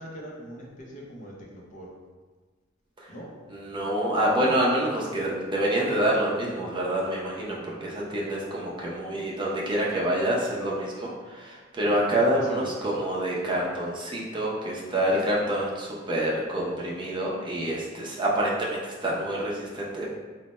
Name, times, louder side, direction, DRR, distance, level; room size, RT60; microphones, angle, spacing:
voice 1, 0.0-1.9 3.1-3.3 12.4-12.9, right 1 dB, 40° left, -3 dB, 0.6 m, -42 dB
voice 2, 3.5-20.1, right 1 dB, 25° right, -4 dB, 0.6 m, -27 dB
3.2 x 2.1 x 4.1 m, 1.4 s
head